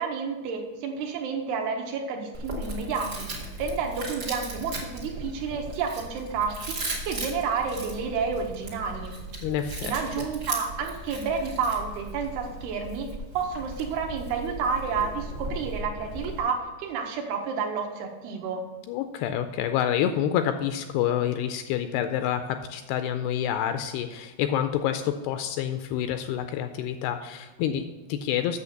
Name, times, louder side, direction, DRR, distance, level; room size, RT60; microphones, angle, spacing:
voice 1, 0.0-3.3 3.6-6.8 7.0-9.2 9.8-13.1 13.3-18.6, right 5 dB, 75° right, 2 dB, 2.7 m, -30 dB
Chewing mastication, 2.3-16.4, right 2 dB, 50° right, 1.1 m, -37 dB
voice 2, 9.4-9.9 18.9-28.6, left 10 dB, 85° left, 8 dB, 2.4 m, -28 dB
8.4 x 6.8 x 6.5 m, 1.2 s
omnidirectional pair, 4.9 m